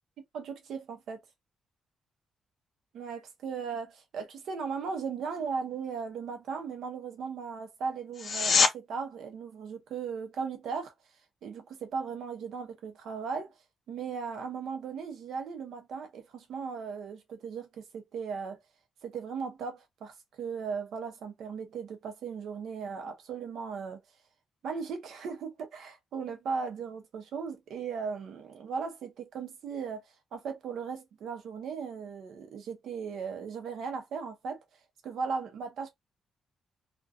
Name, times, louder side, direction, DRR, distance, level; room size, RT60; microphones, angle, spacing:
voice 1, 0.3-1.2 2.9-10.9 11.4-13.5 13.9-18.6 19.0-24.0 24.6-30.0 30.3-34.6 35.0-35.9, right 5 dB, 70° right, 0.7 m, -37 dB
sound 1, 8.1-8.7 20.1-20.2, left 5 dB, 45° left, 0.5 m, -24 dB
2.4 x 2.2 x 2.6 m
cardioid pair, 165°, 0 cm